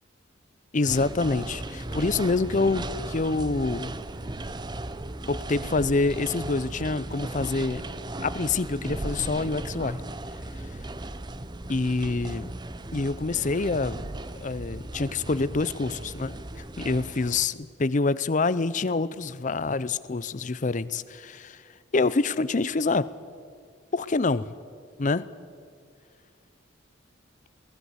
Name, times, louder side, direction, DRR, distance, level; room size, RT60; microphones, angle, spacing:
voice 1, 0.7-3.9 5.3-7.8 8.2-10.0 11.7-12.5 12.9-14.0 14.4-21.6 21.9-23.1 23.9-24.5 25.0-25.3, left 3 dB, 40° left, 17 dB, 0.6 m, -26 dB
sound 1, 0.9-17.5, right 2 dB, 20° right, 0.7 m, -36 dB
22.0 x 18.0 x 8.0 m, 2.2 s
head